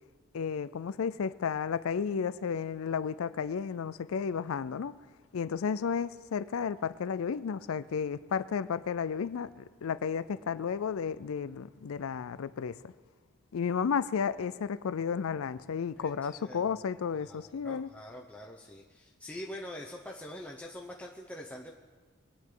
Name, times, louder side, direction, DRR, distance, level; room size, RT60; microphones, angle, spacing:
voice 1, 0.3-4.9 5.3-12.9 13.5-17.9, left 6 dB, 85° left, 16 dB, 0.4 m, -33 dB
voice 2, 16.0-16.6 17.1-21.7, left 1 dB, 5° left, -2 dB, 0.7 m, -44 dB
23.0 x 9.4 x 3.9 m, 1.4 s
head